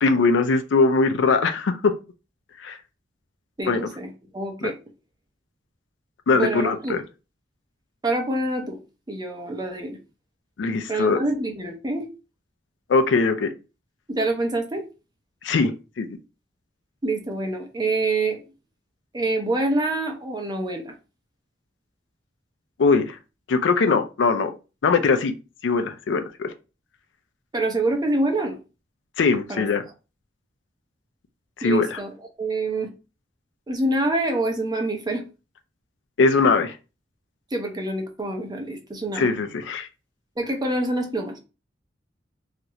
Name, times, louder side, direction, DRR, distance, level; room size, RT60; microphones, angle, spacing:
voice 1, 0.0-1.9 2.6-2.8 3.7-3.9 4.6-4.7 6.3-7.0 10.6-11.2 12.9-13.5 15.4-15.7 16.0-16.1 22.8-23.2 23.5-24.5 24.8-25.3 25.6-26.5 29.2-29.8 31.6-32.0 36.2-36.8 39.2-39.9, left 4 dB, 75° left, 8 dB, 0.4 m, -21 dB
voice 2, 3.6-4.7 6.3-6.9 8.0-8.8 9.1-10.0 10.9-12.1 14.1-14.8 17.0-18.4 19.1-20.9 27.5-28.6 29.5-29.6 31.6-32.1 32.4-32.9 33.7-35.2 37.5-39.3 40.4-41.4, right 2 dB, 20° right, 3 dB, 0.6 m, -26 dB
2.8 x 2.4 x 3.0 m, 0.31 s
head